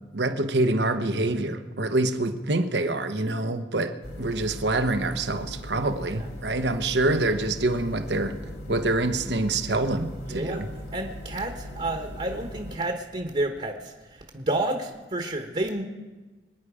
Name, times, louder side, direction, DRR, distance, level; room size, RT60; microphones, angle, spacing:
voice 1, 0.1-8.4 8.7-10.7, right 2 dB, 70° right, 1.1 m, -26 dB
sound 1, 4.0-12.8, left 1 dB, 60° left, 2.7 m, -39 dB
voice 2, 10.3-15.8, right 1 dB, 35° right, 1.2 m, -30 dB
25.0 x 10.0 x 5.0 m
head